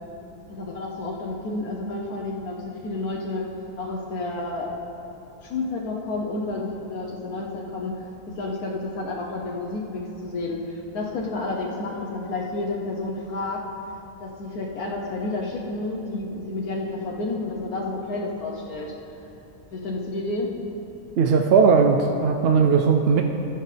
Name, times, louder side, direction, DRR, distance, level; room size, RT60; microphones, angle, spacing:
voice 1, 0.5-3.4 3.8-4.7 5.4-8.0 8.3-13.6 14.2-18.9 19.7-20.5, left 2 dB, 70° left, -2 dB, 1.4 m, -30 dB
voice 2, 21.2-23.2, right 5 dB, 75° right, 4 dB, 0.5 m, -18 dB
13.5 x 10.0 x 3.3 m, 3.0 s
omnidirectional pair, 1.6 m